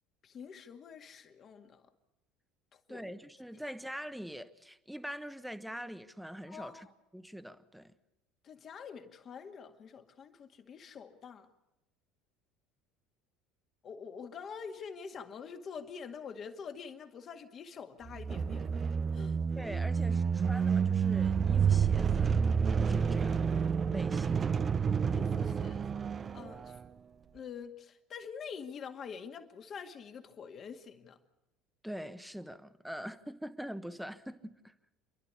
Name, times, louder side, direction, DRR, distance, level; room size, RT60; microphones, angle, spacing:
voice 1, 0.2-1.9 2.7-3.1 3.5-3.6 6.5-6.9 8.4-11.5 13.8-18.8 19.1-19.4 25.1-25.8 26.3-26.7 27.3-31.2, left 6 dB, 45° left, 2.0 m, -46 dB
voice 2, 2.9-6.9 7.1-7.9 19.6-22.5 22.8-23.4 23.9-24.7 31.8-34.7, equal, ahead, 1.2 m, -43 dB
sound 1, 18.1-26.8, right 6 dB, 35° right, 0.6 m, -29 dB
29.0 x 11.5 x 8.4 m
hypercardioid pair, 80°, 0 cm